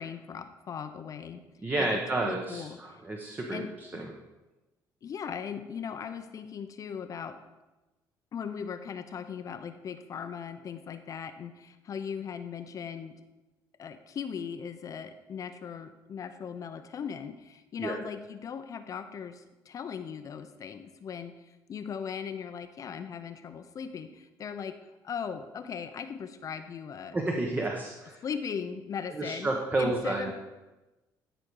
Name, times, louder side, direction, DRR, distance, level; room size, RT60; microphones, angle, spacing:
voice 1, 0.0-1.4 1.8-3.0 3.5-4.1 5.0-7.4 8.3-13.2 13.8-24.8 25.0-27.2 28.2-30.3, left 7 dB, 45° left, 9 dB, 0.6 m, -38 dB
voice 2, 1.6-3.6 3.9-4.1 17.8-18.0 27.1-28.2 29.2-30.3, right 2 dB, 20° right, 1 dB, 1.1 m, -30 dB
13.5 x 5.2 x 4.7 m, 1.1 s
cardioid pair, 110°, 8 cm